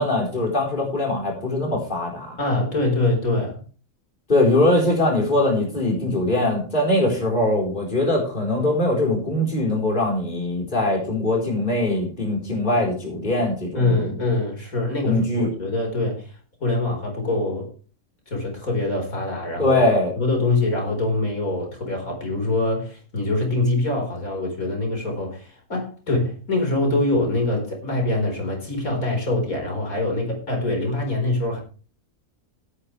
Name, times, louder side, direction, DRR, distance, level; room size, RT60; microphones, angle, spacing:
voice 1, 0.0-2.4 4.3-14.1 15.0-15.5 19.6-20.1, left 1 dB, 35° left, -1 dB, 4.4 m, -22 dB
voice 2, 2.4-3.6 13.7-16.3 16.6-17.7 18.3-19.8 20.2-31.6, left 2 dB, 85° left, 2 dB, 5.0 m, -24 dB
16.5 x 9.9 x 3.3 m, 0.37 s
omnidirectional pair, 1.4 m